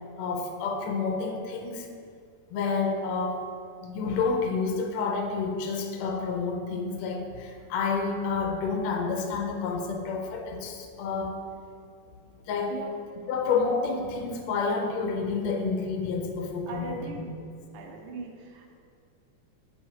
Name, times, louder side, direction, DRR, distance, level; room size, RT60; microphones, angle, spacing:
voice 1, 0.2-1.9 2.5-3.4 3.8-11.4 12.5-12.8 13.3-17.2, left 4 dB, 80° left, 3 dB, 1.7 m, -29 dB
voice 2, 16.7-17.3 17.7-18.8, right 4 dB, 75° right, 1 dB, 1.3 m, -39 dB
7.4 x 5.7 x 2.9 m, 2.4 s
omnidirectional pair, 3.3 m